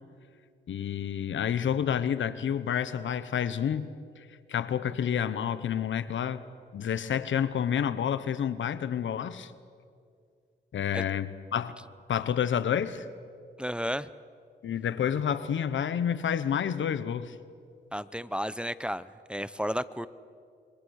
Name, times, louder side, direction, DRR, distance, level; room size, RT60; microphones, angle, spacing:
voice 1, 0.7-3.9 4.5-6.4 6.7-9.5 10.7-11.7 12.1-13.0 14.6-17.3, left 8 dB, 85° left, 14 dB, 1.1 m, -29 dB
voice 2, 13.6-14.1 17.9-20.1, equal, 5° right, 16 dB, 0.8 m, -33 dB
28.0 x 24.5 x 6.6 m, 2.3 s
cardioid pair, 65°, 19 cm